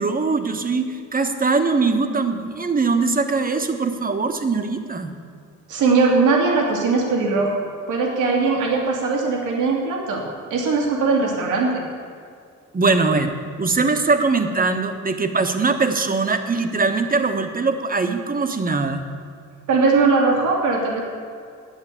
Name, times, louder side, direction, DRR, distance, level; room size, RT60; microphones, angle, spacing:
voice 1, 0.0-5.1 12.7-19.0, right 4 dB, 30° right, 6 dB, 1.3 m, -21 dB
voice 2, 5.7-7.6 7.9-10.2 10.5-11.8 19.7-21.0, right 4 dB, 90° right, -1 dB, 2.5 m, -20 dB
11.0 x 8.6 x 8.5 m, 2.3 s
cardioid pair, 90°, 30 cm